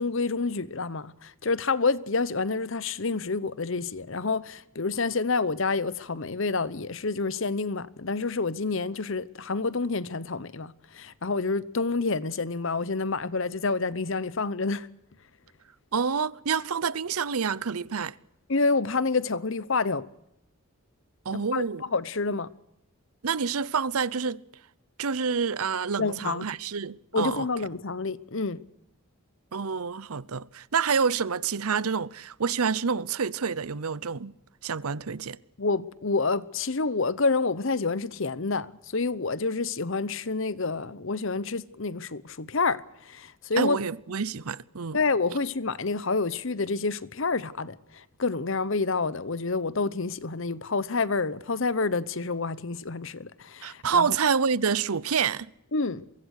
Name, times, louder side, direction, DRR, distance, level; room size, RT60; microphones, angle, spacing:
voice 1, 0.0-14.9 18.5-20.1 21.3-22.5 26.0-26.4 27.1-28.6 35.6-43.8 44.9-54.2 55.7-56.0, left 4 dB, 60° left, 0.9 m, -28 dB
voice 2, 15.9-18.2 21.2-21.8 23.2-24.4 25.0-27.5 29.5-34.3 34.6-35.4 43.6-45.0 53.6-55.5, right 6 dB, 85° right, 0.8 m, -28 dB
23.5 x 23.0 x 6.5 m
head